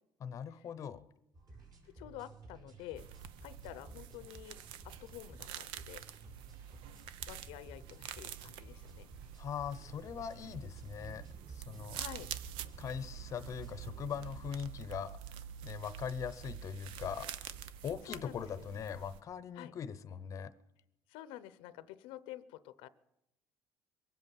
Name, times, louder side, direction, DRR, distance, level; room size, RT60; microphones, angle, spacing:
voice 1, 0.2-1.1 9.4-12.0 12.8-15.2 15.6-17.5 17.8-20.5, left 8 dB, 35° left, 14 dB, 0.8 m, -41 dB
sound 1, 1.3-14.7, right 2 dB, 45° right, 5.3 m, -55 dB
voice 2, 1.9-3.1 3.4-4.6 4.8-6.0 7.3-9.1 11.7-12.3 17.7-18.7 19.5-19.7 21.1-22.9, left 13 dB, 85° left, 15 dB, 0.8 m, -49 dB
sound 2, 3.0-19.2, right 10 dB, 80° right, 0.8 m, -47 dB
23.0 x 8.2 x 7.2 m, 0.85 s
cardioid pair, 140°, 9 cm